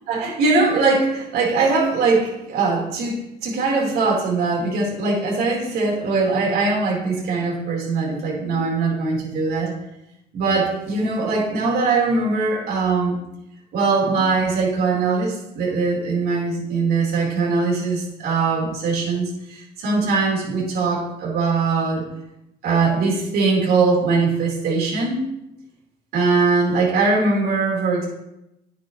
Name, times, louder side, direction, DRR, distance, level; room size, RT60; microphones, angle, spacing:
voice 1, 0.1-3.2 3.4-9.7 10.3-13.2 13.7-22.0 22.6-25.2 26.1-28.1, right 4 dB, 70° right, -3 dB, 4.2 m, -21 dB
10.5 x 9.2 x 3.2 m, 0.87 s
cardioid pair, 110°, 17 cm